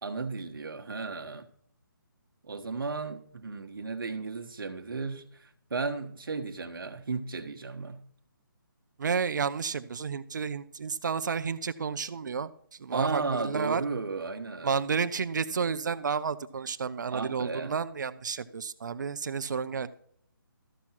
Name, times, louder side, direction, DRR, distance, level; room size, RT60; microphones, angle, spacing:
voice 1, 0.0-1.4 2.5-8.0 12.9-14.7 17.1-17.7, right 4 dB, 75° right, 5 dB, 1.3 m, -34 dB
voice 2, 9.0-12.5 12.8-13.8 14.6-19.9, right 6 dB, 55° right, 13 dB, 0.7 m, -31 dB
14.0 x 5.9 x 4.4 m, 0.63 s
hypercardioid pair, 165°, 12 cm